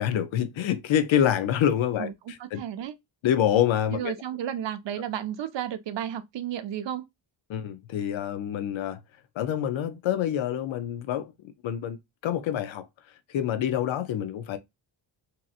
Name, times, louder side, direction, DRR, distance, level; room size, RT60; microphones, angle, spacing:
voice 1, 0.0-2.1 2.5-2.6 3.2-4.1 7.5-9.0 9.4-11.3 11.6-12.9 13.3-14.6, left 10 dB, 70° left, 0.7 m, -26 dB
voice 2, 2.4-2.9 3.9-7.0, right 10 dB, 60° right, 0.7 m, -32 dB
2.8 x 2.6 x 2.4 m
cardioid pair, 65°, 49 cm